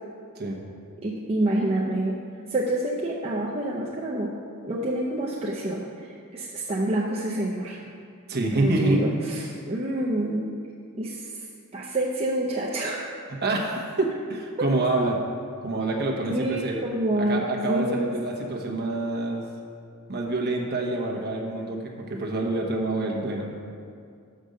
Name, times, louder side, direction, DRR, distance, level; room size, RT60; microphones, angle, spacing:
voice 1, 1.0-2.2 2.5-4.3 4.6-7.8 8.5-10.5 10.9-11.5 11.7-13.1 16.3-18.1, right 1 dB, 30° right, -4 dB, 0.6 m, -27 dB
voice 2, 8.3-9.0 13.4-15.2 15.6-16.8 17.3-19.4 20.1-23.5, right 2 dB, 50° right, 0 dB, 1.0 m, -27 dB
6.7 x 5.2 x 6.4 m, 2.3 s
head